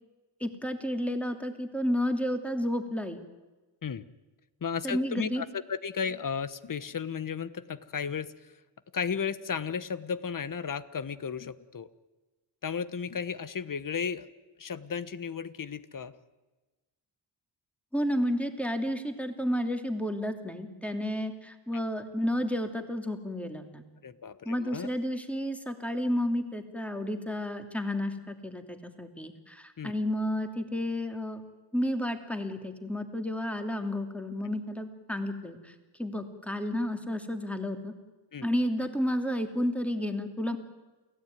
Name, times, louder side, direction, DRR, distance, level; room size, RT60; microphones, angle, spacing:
voice 1, 0.4-3.2 4.8-5.4 17.9-23.8 24.4-31.4 31.7-37.9 38.4-40.6, equal, 5° left, 6 dB, 2.8 m, -31 dB
voice 2, 4.6-8.5 8.9-11.9 12.6-14.3 14.6-16.1 21.7-21.8 24.0-24.9 29.8-29.9 38.3-38.5, left 6 dB, 45° left, 15 dB, 1.3 m, -34 dB
28.5 x 16.5 x 9.4 m, 1.2 s
cardioid pair, 85°, 46 cm